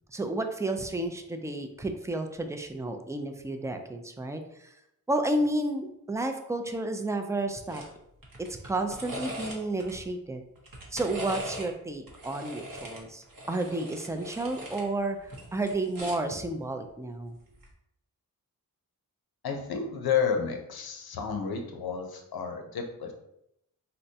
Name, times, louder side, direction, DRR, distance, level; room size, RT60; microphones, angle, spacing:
voice 1, 0.1-4.7 5.1-7.8 8.4-10.4 10.9-17.4, right 2 dB, 10° right, 6 dB, 0.3 m, -31 dB
sound 1, 7.7-7.9 8.2-9.9 10.6-11.7 12.1-14.9 15.2-16.3 17.5-17.7, equal, 65° right, 0.9 m, -40 dB
voice 2, 19.4-23.1, left 6 dB, 85° left, 4 dB, 0.6 m, -31 dB
3.9 x 2.2 x 2.7 m, 0.80 s
cardioid pair, 60°, 36 cm